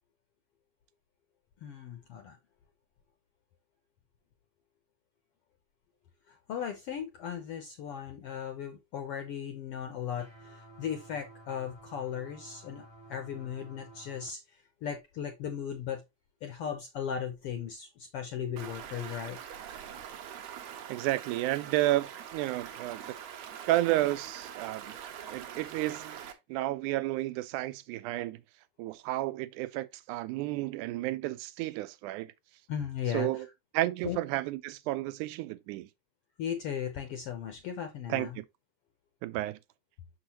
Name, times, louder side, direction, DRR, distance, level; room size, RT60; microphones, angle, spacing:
voice 1, 1.6-2.4 6.3-16.0 16.4-19.4 32.7-33.4 34.0-34.2 36.4-38.4, left 8 dB, 75° left, 1.3 m, -37 dB
sound 1, 10.2-14.3, right 2 dB, 45° right, 0.3 m, -53 dB
Stream, 18.6-26.3, right 9 dB, 70° right, 1.9 m, -44 dB
voice 2, 20.9-23.0 23.7-25.0 25.3-26.2 26.5-28.4 28.8-32.3 33.1-33.5 33.7-35.9 38.1-38.5 39.2-39.6, right 16 dB, 90° right, 2.1 m, -31 dB
6.3 x 5.9 x 2.8 m
omnidirectional pair, 3.5 m